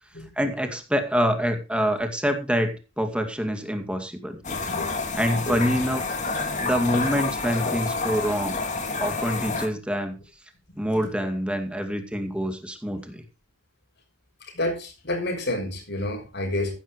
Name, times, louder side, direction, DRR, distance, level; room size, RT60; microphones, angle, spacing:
voice 1, 0.4-4.4 5.2-6.0 6.6-8.6 9.0-10.1 10.8-13.2, equal, 5° right, 6 dB, 2.2 m, -26 dB
sound 1, 4.4-9.7, left 3 dB, 35° left, 2.4 m, -28 dB
voice 2, 14.5-16.7, left 1 dB, 55° left, 4 dB, 6.3 m, -29 dB
15.0 x 12.0 x 3.1 m, 0.28 s
head